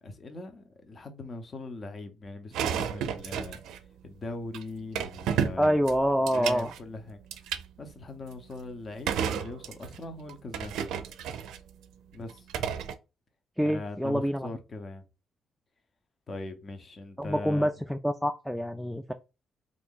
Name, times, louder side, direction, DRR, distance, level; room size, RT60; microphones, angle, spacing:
voice 1, 0.0-3.6 4.0-5.8 6.2-7.2 7.8-10.7 12.1-12.5 13.6-15.0 16.3-17.7, left 2 dB, 40° left, 0.8 m, -40 dB
sound 1, 2.5-3.8 4.5-4.6 5.0-6.8 7.3-7.6 9.1-10.0 10.3-11.6 12.3-12.9, right 8 dB, 90° right, 0.4 m, -31 dB
voice 2, 5.6-6.7 13.6-14.5 17.2-19.1, equal, ahead, 0.3 m, -26 dB
2.8 x 2.6 x 3.7 m
cardioid pair, 90°, 0 cm